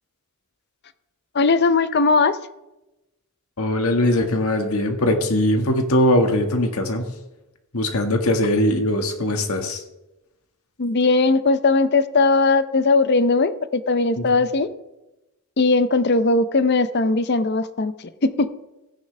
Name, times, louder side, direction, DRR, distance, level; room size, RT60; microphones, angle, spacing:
voice 1, 1.3-2.4 10.8-14.7 15.6-17.9 18.2-18.5, left 3 dB, 50° left, 13 dB, 0.6 m, -19 dB
voice 2, 3.6-7.1 7.7-9.8 14.2-14.3, left 1 dB, 80° left, 4 dB, 1.7 m, -20 dB
15.5 x 10.0 x 3.3 m, 0.97 s
head